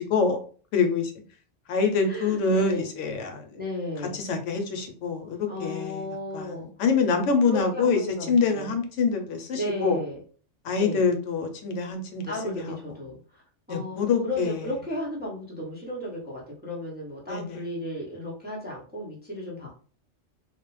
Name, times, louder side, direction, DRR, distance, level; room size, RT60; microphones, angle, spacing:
voice 1, 0.7-1.1 1.7-3.5 4.1-6.1 6.3-10.0 10.6-13.0 13.7-14.6 17.3-17.7, left 5 dB, 85° left, 5 dB, 0.9 m, -26 dB
voice 2, 2.0-2.9 3.5-4.2 5.5-6.6 7.5-8.7 9.5-10.2 10.8-11.1 12.3-13.4 13.7-19.7, left 1 dB, 10° right, -5 dB, 0.6 m, -34 dB
2.3 x 2.0 x 3.0 m, 0.41 s
omnidirectional pair, 1.2 m